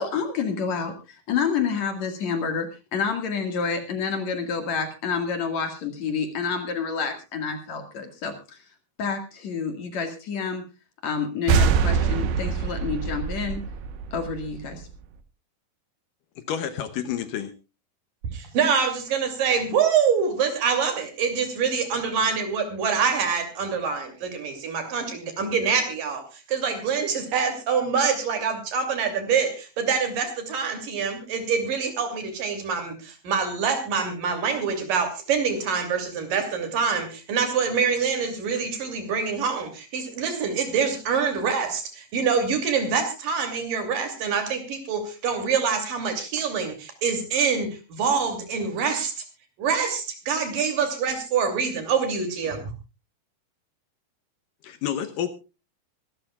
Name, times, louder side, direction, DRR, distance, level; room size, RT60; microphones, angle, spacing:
voice 1, 0.0-8.6 9.0-10.6 11.0-13.6 14.1-14.8, left 5 dB, 55° left, 7 dB, 2.8 m, -28 dB
sound 1, 11.5-15.0, right 6 dB, 85° right, 3.2 m, -24 dB
voice 2, 16.4-17.5 54.6-55.3, left 9 dB, 70° left, 11 dB, 2.4 m, -29 dB
voice 3, 18.3-49.1 49.6-52.6, right 6 dB, 65° right, 7 dB, 4.2 m, -25 dB
24.5 x 12.5 x 2.3 m, 0.30 s
omnidirectional pair, 4.3 m